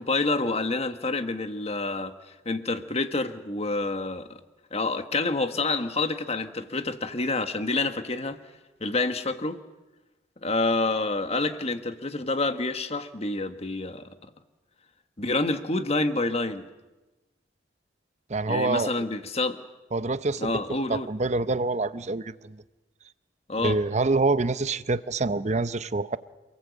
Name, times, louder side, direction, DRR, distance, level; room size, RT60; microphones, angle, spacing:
voice 1, 0.0-2.1 2.4-4.4 4.7-8.4 8.8-9.6 10.4-14.1 15.2-16.7 18.5-19.6 20.4-21.1 23.5-23.8, left 3 dB, 35° left, 1.4 m, -28 dB
voice 2, 18.3-18.9 19.9-22.6 23.6-26.2, right 3 dB, 40° right, 0.7 m, -26 dB
28.0 x 18.5 x 8.3 m
head